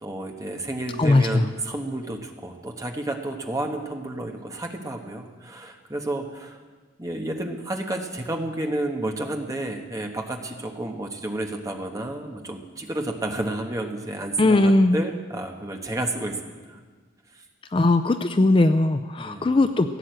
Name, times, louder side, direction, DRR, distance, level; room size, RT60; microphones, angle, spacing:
voice 1, 0.0-6.6 7.0-16.8 17.3-17.4 19.2-19.6, right 1 dB, 15° right, 3 dB, 1.2 m, -31 dB
voice 2, 1.0-1.5 14.4-15.0 17.7-20.0, left 2 dB, 25° left, 9 dB, 0.4 m, -19 dB
16.0 x 8.8 x 7.7 m, 1.4 s
head